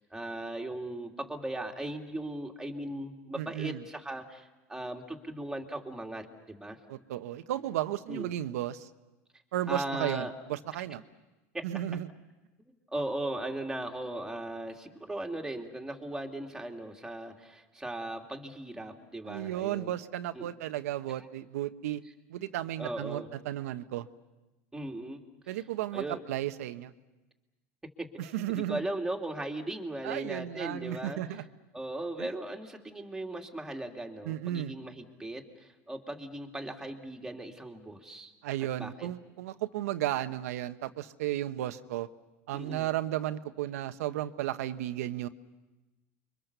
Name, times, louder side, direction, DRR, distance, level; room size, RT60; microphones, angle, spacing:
voice 1, 0.0-6.8 8.1-8.3 9.7-10.3 11.5-11.6 12.7-19.9 20.3-20.5 22.8-23.3 24.7-25.2 25.9-26.2 28.0-28.1 28.5-31.2 31.7-38.3 38.8-39.1 42.5-42.9, right 1 dB, 5° right, 2 dB, 2.6 m, -38 dB
voice 2, 3.4-3.8 6.9-8.9 9.5-11.0 11.6-12.1 19.2-22.0 22.3-24.1 25.5-26.9 28.2-28.8 30.0-31.4 32.2-32.3 34.2-34.7 38.4-42.1 42.5-45.3, right 13 dB, 85° right, 10 dB, 1.1 m, -34 dB
30.0 x 24.0 x 6.9 m, 1.1 s
supercardioid pair, 125°, 8 cm